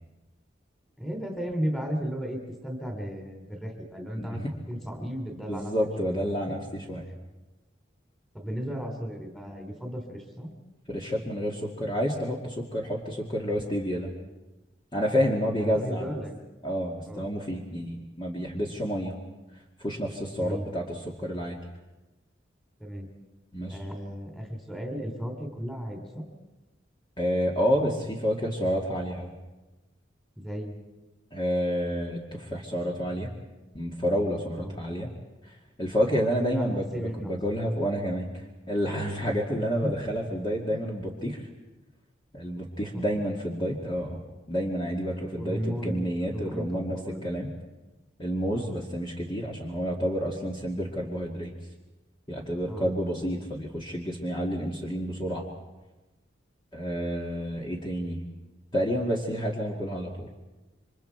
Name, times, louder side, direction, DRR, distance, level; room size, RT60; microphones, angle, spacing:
voice 1, 1.0-4.4 4.7-5.7 6.0-6.2 8.3-10.5 15.6-16.4 17.0-17.3 20.4-20.7 22.8-23.1 23.7-26.3 30.4-30.7 34.6-34.8 36.3-37.4 39.5-39.9 40.7-40.8 42.8-43.0 45.4-47.3 48.5-48.8 52.7-52.9, equal, ahead, 3 dB, 3.0 m, -35 dB
voice 2, 4.2-4.5 5.5-7.1 10.9-14.1 14.9-16.1 16.6-19.1 19.8-21.6 23.5-23.8 27.2-29.3 31.3-33.3 33.7-35.1 35.8-38.3 38.7-41.4 42.3-44.2 44.5-47.5 48.2-51.5 52.3-55.4 56.7-58.2 58.7-60.3, equal, 25° left, -2 dB, 2.1 m, -29 dB
28.5 x 24.5 x 4.6 m, 1.1 s
head